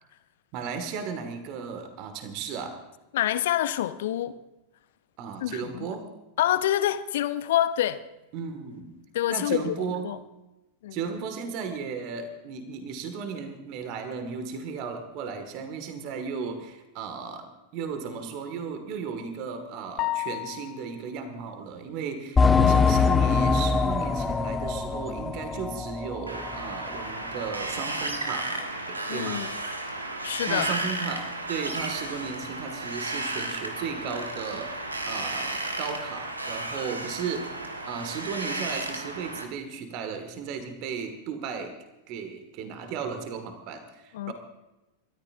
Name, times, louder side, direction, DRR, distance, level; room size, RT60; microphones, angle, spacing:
voice 1, 0.5-2.8 5.2-6.1 8.3-8.9 9.3-10.1 10.9-29.5 30.5-37.5 37.9-41.7 42.1-44.3, right 6 dB, 40° right, 2.0 m, -35 dB
voice 2, 3.1-4.4 5.4-5.9 6.4-8.0 9.1-9.8 10.0-10.2 10.8-11.0 29.1-29.5 30.2-30.7 44.1-44.3, left 12 dB, 55° left, 0.8 m, -26 dB
sound 1, 20.0-21.0, left 18 dB, 40° left, 0.5 m, -31 dB
sound 2, 22.4-26.6 27.0-27.1 27.6-27.7, left 5 dB, 15° left, 0.8 m, -23 dB
Wind, 26.3-39.4, right 2 dB, 80° right, 1.5 m, -33 dB
29.0 x 13.5 x 2.7 m
figure-of-eight pair, 90°, 0 cm